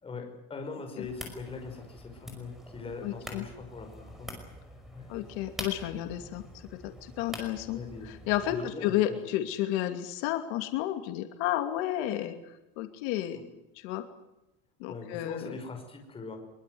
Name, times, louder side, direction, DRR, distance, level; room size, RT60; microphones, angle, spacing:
voice 1, 0.0-4.3 4.9-5.1 7.7-8.1 8.5-9.3 13.3-13.4 14.9-16.4, left 4 dB, 15° left, 3 dB, 5.6 m, -41 dB
sound 1, 1.0-8.6, equal, ahead, 5.4 m, -45 dB
voice 2, 3.0-3.4 5.1-6.4 6.7-7.8 8.0-13.4 13.8-14.0 14.8-15.5, left 13 dB, 80° left, 7 dB, 2.6 m, -32 dB
24.0 x 23.0 x 7.9 m, 0.92 s
cardioid pair, 170°, 32 cm